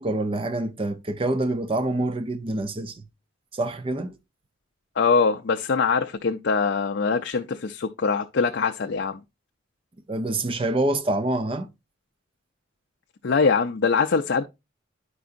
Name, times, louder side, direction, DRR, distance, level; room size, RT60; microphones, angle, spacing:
voice 1, 0.0-3.0 3.5-4.2 10.1-11.7, right 2 dB, 25° right, 0.6 m, -26 dB
voice 2, 5.0-9.2 13.2-14.4, left 5 dB, 60° left, 0.5 m, -23 dB
10.0 x 4.8 x 2.5 m
head